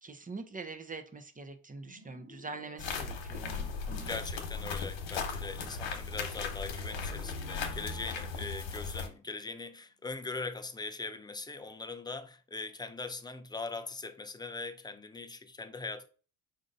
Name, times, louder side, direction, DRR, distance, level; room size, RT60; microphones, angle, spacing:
voice 1, 0.0-4.1, right 3 dB, 20° right, 0.7 m, -44 dB
sound 1, 1.8-4.2 6.6-9.9, right 2 dB, 70° right, 1.6 m, -58 dB
sound 2, 2.8-9.1, left 5 dB, 80° left, 1.1 m, -37 dB
voice 2, 4.1-16.1, left 3 dB, 10° left, 0.4 m, -41 dB
5.1 x 2.6 x 3.9 m
supercardioid pair, 75°, 47 cm